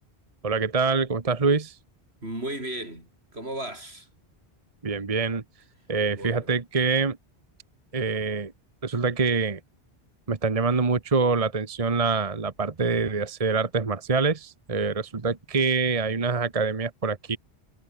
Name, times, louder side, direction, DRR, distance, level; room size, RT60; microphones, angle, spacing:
voice 1, 0.4-1.8 4.8-5.4 5.9-7.2 7.9-8.5 8.8-9.6 10.3-17.4, right 4 dB, 35° right, 1.3 m, -25 dB
voice 2, 2.2-4.1 6.1-6.5, right 1 dB, 80° right, 7.9 m, -35 dB
omnidirectional pair, 1.1 m